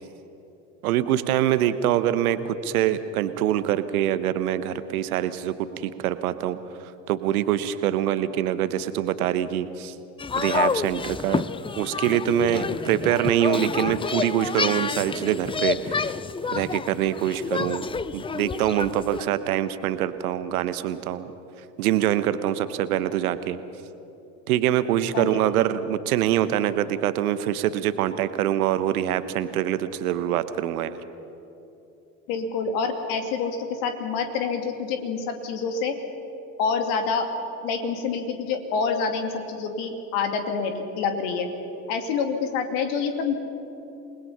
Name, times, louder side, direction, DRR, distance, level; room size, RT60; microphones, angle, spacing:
voice 1, 0.8-6.6 6.8-9.9 10.4-11.4 11.8-16.1 16.5-21.3 21.8-23.6 24.5-31.0, right 11 dB, 70° right, 13 dB, 1.1 m, -24 dB
sound 1, 10.2-19.2, left 5 dB, 10° left, 0.5 m, -29 dB
voice 2, 32.3-33.6 33.8-35.9 36.6-37.2 37.6-41.5 41.9-43.3, left 5 dB, 65° left, 6 dB, 2.6 m, -27 dB
28.0 x 20.0 x 5.7 m, 2.9 s
figure-of-eight pair, 65°, 44 cm